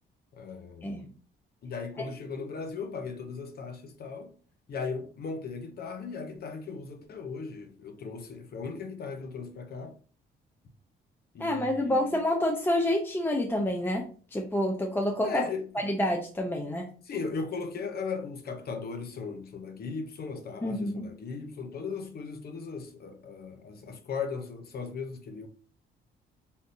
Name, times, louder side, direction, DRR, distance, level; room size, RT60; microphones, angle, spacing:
voice 1, 0.3-1.1 1.6-4.3 4.7-9.9 11.3-12.2 15.2-15.7 17.0-25.5, left 5 dB, 50° left, 0.7 m, -37 dB
voice 2, 11.4-16.9 20.6-21.1, left 1 dB, 10° left, 0.5 m, -28 dB
3.6 x 2.6 x 2.6 m
cardioid pair, 90°, 20 cm